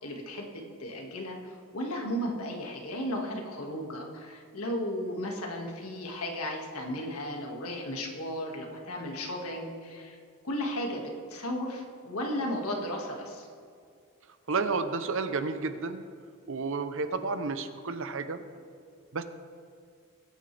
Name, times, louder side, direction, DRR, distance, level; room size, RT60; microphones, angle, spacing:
voice 1, 0.0-10.2 10.4-11.0 11.3-13.5, equal, 80° left, 1 dB, 2.0 m, -35 dB
voice 2, 14.5-16.0 16.5-18.4 19.1-19.2, right 4 dB, 65° right, 10 dB, 0.8 m, -31 dB
21.5 x 9.1 x 3.4 m, 2.2 s
head